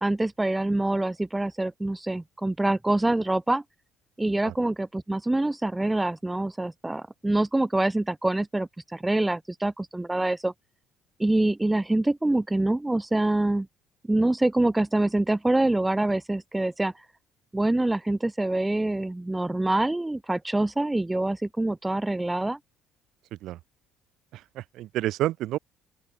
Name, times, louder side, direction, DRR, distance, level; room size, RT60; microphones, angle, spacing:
voice 1, 0.0-3.6 4.2-10.5 11.2-13.7 14.1-17.0 17.5-22.6, right 2 dB, 10° right, 1.2 m, -25 dB
voice 2, 24.3-25.6, right 14 dB, 65° right, 4.2 m, -30 dB
open air
cardioid pair, 125°, 0 cm